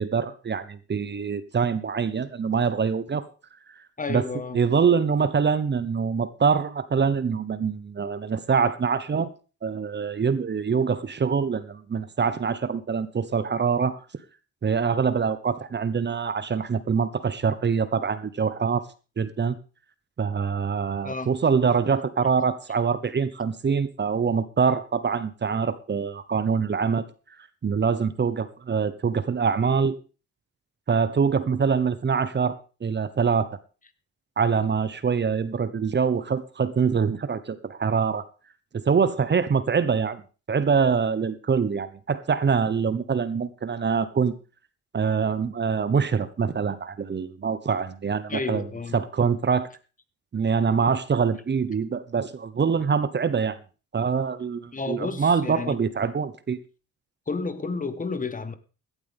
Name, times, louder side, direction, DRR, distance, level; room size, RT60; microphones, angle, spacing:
voice 1, 0.0-3.3 4.1-4.2 4.5-9.3 9.6-14.0 14.6-18.9 19.2-19.6 20.2-27.1 27.6-30.0 30.9-33.5 34.4-38.2 38.7-40.2 40.5-44.4 44.9-48.7 48.9-49.7 50.3-53.6 53.9-56.6, right 6 dB, 35° right, 1.2 m, -24 dB
voice 2, 4.0-4.6 21.0-21.3 48.3-49.0 54.7-55.8 57.3-58.5, left 4 dB, 25° left, 1.6 m, -31 dB
17.0 x 12.0 x 3.6 m
cardioid pair, 90°, 30 cm